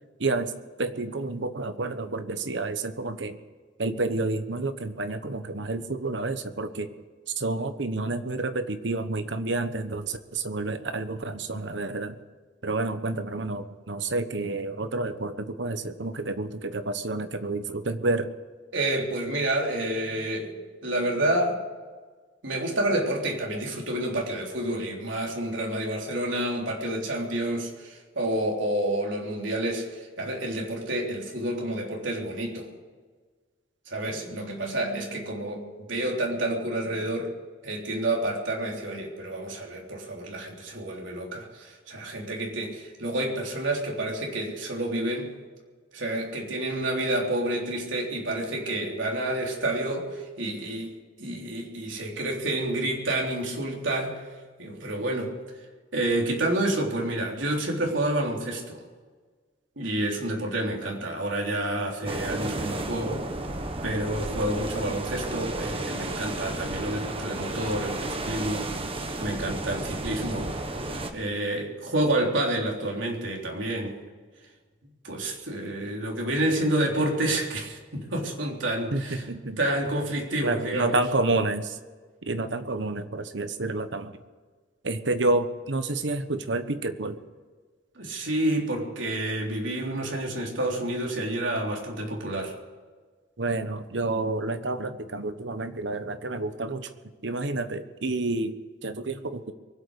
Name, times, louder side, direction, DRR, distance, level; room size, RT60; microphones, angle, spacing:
voice 1, 0.2-0.5 0.8-3.4 3.8-6.9 7.4-12.2 12.6-18.3 78.9-79.6 80.4-81.8 82.2-84.2 84.8-87.2 93.4-96.9 97.2-99.5, right 2 dB, 70° right, 10 dB, 1.2 m, -29 dB
voice 2, 18.7-20.6 20.8-21.6 22.4-32.7 33.9-37.3 37.6-45.3 45.9-50.9 51.2-54.2 54.6-55.3 55.9-58.8 59.8-63.2 63.8-68.9 69.2-70.5 71.1-74.0 75.0-79.2 79.6-81.0 88.0-92.6, right 1 dB, 85° right, -1 dB, 3.6 m, -29 dB
sound 1, 62.1-71.1, right 2 dB, 30° right, 1.4 m, -33 dB
23.5 x 8.5 x 6.5 m, 1.5 s
head